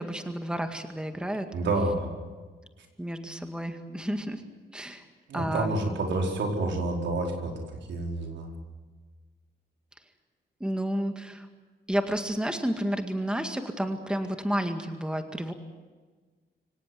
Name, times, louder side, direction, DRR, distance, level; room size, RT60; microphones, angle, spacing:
voice 1, 0.0-1.5 3.0-4.4 4.7-5.1 5.3-5.8 10.6-11.5 11.9-15.5, equal, 5° right, 6 dB, 2.0 m, -31 dB
voice 2, 1.5-2.1 5.3-7.6 7.9-8.5, right 2 dB, 80° right, 2 dB, 4.8 m, -28 dB
25.5 x 17.5 x 9.4 m, 1.4 s
cardioid pair, 110°, 18 cm